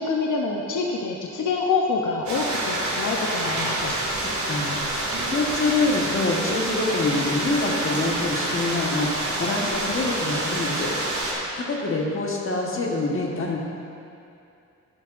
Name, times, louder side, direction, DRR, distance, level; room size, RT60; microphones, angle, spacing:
voice 1, 0.0-4.0, left 4 dB, 85° left, 0 dB, 0.8 m, -26 dB
sound 1, 2.3-11.3, right 1 dB, 70° right, 2.3 m, -27 dB
voice 2, 4.2-4.8 5.3-11.3 11.6-13.6, left 3 dB, 45° left, -1 dB, 1.4 m, -26 dB
12.5 x 10.5 x 2.5 m, 2.6 s
wide cardioid pair, 140°, 30 cm